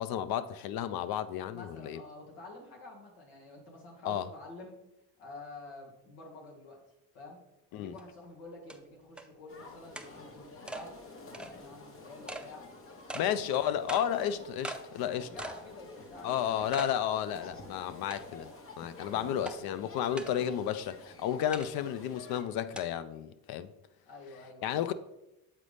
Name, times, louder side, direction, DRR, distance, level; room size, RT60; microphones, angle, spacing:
voice 1, 0.0-2.0 4.1-4.3 7.7-7.9 13.1-15.3 16.2-18.5 18.8-23.7 24.6-24.9, left 10 dB, 60° left, 0.5 m, -32 dB
voice 2, 1.5-4.8 5.2-6.8 7.1-7.4 7.7-11.0 11.3-12.7 13.1-13.5 15.1-17.0 19.1-19.8 20.3-20.5 24.1-24.9, left 2 dB, 85° left, 1.8 m, -49 dB
sound 1, 8.0-8.1 8.7-8.8 9.2-9.3 10.0-10.1 10.7-10.8 11.3-11.5 12.3-12.5 13.1-13.3 13.9-14.1 14.6-14.8 15.4-15.6 16.0-16.1 16.7-16.9 17.4-17.5 18.1-18.5 19.5-19.6 20.2-20.3 21.5-21.7 22.8-22.9, right 1 dB, 5° right, 0.4 m, -40 dB
sound 2, 9.5-22.4, left 3 dB, 30° left, 0.9 m, -50 dB
7.4 x 4.0 x 3.3 m
supercardioid pair, 90°, 42 cm